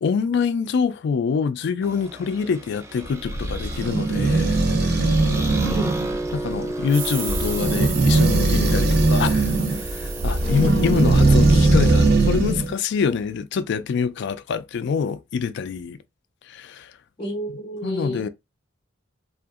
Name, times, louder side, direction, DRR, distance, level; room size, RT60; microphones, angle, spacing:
voice 1, 0.0-5.2 6.3-16.0 16.5-16.9 17.8-18.3, left 6 dB, 60° left, 0.3 m, -25 dB
sound 1, 1.8-11.6, right 1 dB, 15° right, 0.4 m, -34 dB
sound 2, 3.0-12.7, right 2 dB, 55° right, 0.6 m, -20 dB
voice 2, 5.6-6.0 10.4-11.3 17.2-18.3, right 1 dB, 25° left, 0.6 m, -32 dB
sound 3, 6.9-12.2, right 5 dB, 80° right, 0.8 m, -35 dB
2.7 x 2.4 x 2.3 m
head